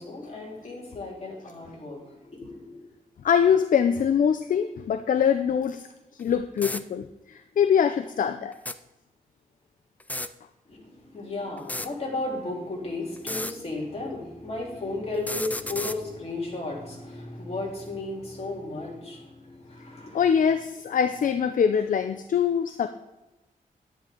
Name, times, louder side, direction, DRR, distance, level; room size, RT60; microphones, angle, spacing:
voice 1, 0.0-2.8 10.7-20.3, left 2 dB, 45° left, -3 dB, 3.5 m, -34 dB
voice 2, 3.2-5.9 6.2-8.5 20.1-22.9, left 7 dB, 65° left, 8 dB, 0.6 m, -23 dB
sound 1, 6.2-6.3 6.6-6.8 8.5-8.8 10.0-10.3 11.6-11.9 13.2-13.5 15.1-16.0, left 2 dB, 10° left, 0.4 m, -32 dB
10.5 x 10.0 x 3.8 m, 1.0 s
wide cardioid pair, 115°, 15 cm